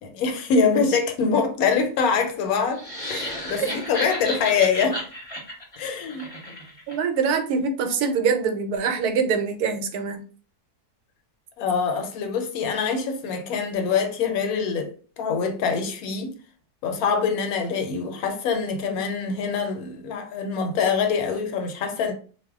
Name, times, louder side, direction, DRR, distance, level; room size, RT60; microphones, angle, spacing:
voice 1, 0.0-2.8 3.1-5.0 5.8-6.3 11.6-16.3 16.8-22.1, left 5 dB, 70° left, 1.0 m, -24 dB
sound 1, 2.7-7.0, equal, 30° left, 0.7 m, -33 dB
voice 2, 6.9-10.2, right 5 dB, 80° right, 1.1 m, -24 dB
2.6 x 2.0 x 3.5 m
omnidirectional pair, 1.7 m